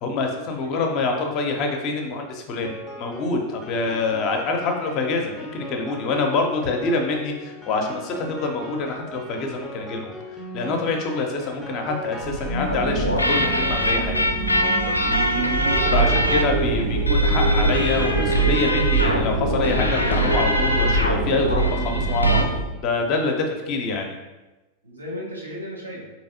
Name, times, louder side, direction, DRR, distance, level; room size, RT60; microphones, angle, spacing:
voice 1, 0.0-10.1 10.5-14.1 15.9-22.5 22.8-24.2, left 3 dB, 40° left, 3 dB, 0.6 m, -26 dB
voice 2, 0.6-1.0 7.4-7.5 15.3-15.5 21.4-22.4 24.8-26.1, equal, 80° right, -4 dB, 0.9 m, -37 dB
Piano, 2.6-17.0, right 1 dB, ahead, 0.6 m, -38 dB
sound 1, 12.2-22.7, right 2 dB, 50° right, 0.5 m, -26 dB
sound 2, 12.7-22.4, right 1 dB, 85° left, 0.4 m, -22 dB
3.9 x 2.9 x 2.7 m, 1.1 s
figure-of-eight pair, 90°, 0 cm